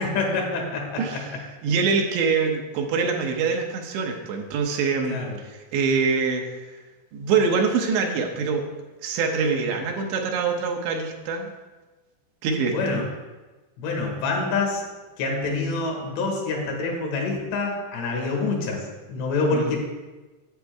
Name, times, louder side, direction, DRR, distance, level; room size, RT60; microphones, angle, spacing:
voice 1, 0.0-1.2 5.1-5.4 12.7-13.0 13.8-14.9 15.2-19.8, left 3 dB, 80° left, 0 dB, 3.6 m, -26 dB
voice 2, 1.0-1.4 1.6-5.2 5.5-6.8 7.1-8.7 9.0-11.5 12.4-13.1 19.5-19.8, right 5 dB, 80° right, 2 dB, 3.1 m, -24 dB
9.6 x 8.4 x 3.5 m, 1.2 s
omnidirectional pair, 5.1 m